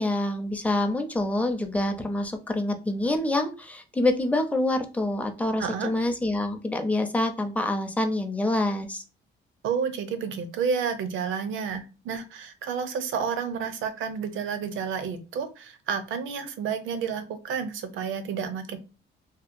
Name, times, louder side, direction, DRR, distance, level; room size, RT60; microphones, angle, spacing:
voice 1, 0.0-9.0, left 1 dB, 5° left, 5 dB, 0.5 m, -26 dB
voice 2, 5.6-5.9 9.6-18.8, right 6 dB, 80° right, 10 dB, 0.5 m, -30 dB
2.8 x 2.2 x 2.5 m, 0.32 s
cardioid pair, 90°, 20 cm